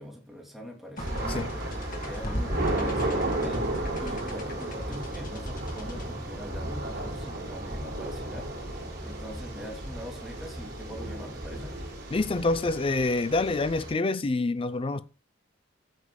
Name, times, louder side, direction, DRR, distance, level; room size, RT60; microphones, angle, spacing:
voice 1, 0.0-1.5 1.9-11.7, equal, ahead, 2.4 m, -43 dB
sound 1, 1.0-8.3, equal, 45° left, 1.9 m, -38 dB
Thunder / Rain, 1.0-13.9, right 1 dB, 50° right, 3.7 m, -34 dB
voice 2, 12.1-15.0, left 3 dB, 30° left, 0.4 m, -26 dB
14.5 x 8.2 x 2.2 m
head